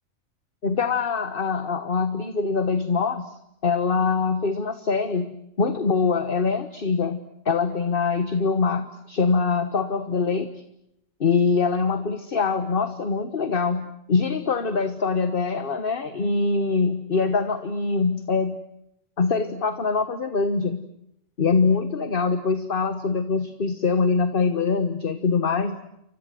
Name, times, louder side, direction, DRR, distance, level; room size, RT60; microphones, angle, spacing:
voice 1, 0.6-10.5 11.2-18.6 19.2-20.9 21.4-25.8, left 4 dB, 45° left, 10 dB, 1.5 m, -24 dB
29.5 x 24.5 x 7.7 m, 0.81 s
omnidirectional pair, 1.4 m